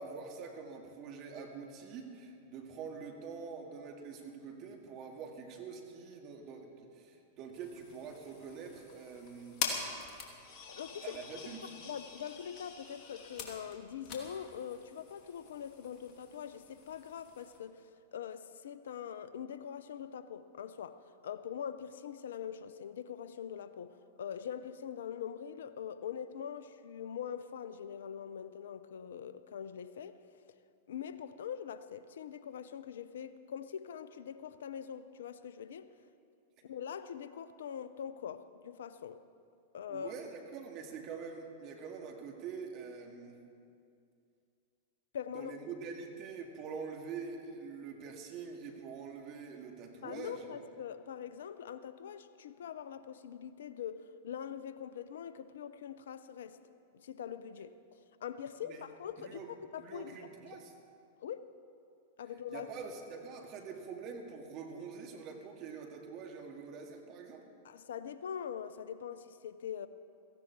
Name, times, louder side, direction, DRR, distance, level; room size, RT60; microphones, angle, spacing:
voice 1, 0.0-9.6 9.9-10.1 11.0-11.7 39.9-43.4 45.3-50.5 58.6-58.8 59.2-59.5 59.8-60.7 62.5-67.4, right 5 dB, 45° right, 2 dB, 2.3 m, -45 dB
sound 1, 7.5-17.6, left 5 dB, 40° left, 2.7 m, -45 dB
voice 2, 10.7-11.2 11.8-30.2 30.9-35.9 36.6-39.2 39.7-40.1 45.1-45.5 50.0-56.6 56.9-59.4 59.7-60.2 60.5-60.6 61.2-61.5 62.2-62.7 67.6-69.9, left 8 dB, 75° left, 13 dB, 0.7 m, -43 dB
17.0 x 15.0 x 4.7 m, 2.5 s
hypercardioid pair, 100°, 0 cm